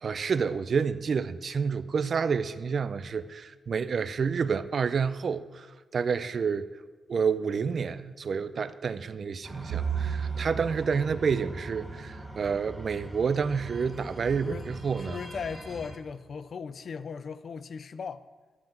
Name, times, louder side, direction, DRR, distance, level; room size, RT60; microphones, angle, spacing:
voice 1, 0.0-5.7 5.9-6.7 7.1-15.2, right 6 dB, 50° right, 0.4 m, -29 dB
sound 1, 9.4-15.9, right 1 dB, ahead, 1.4 m, -43 dB
Bowed string instrument, 9.7-14.1, right 7 dB, 75° right, 1.0 m, -36 dB
voice 2, 15.0-18.2, left 6 dB, 55° left, 0.4 m, -37 dB
11.5 x 5.8 x 8.9 m
wide cardioid pair, 140°, 0 cm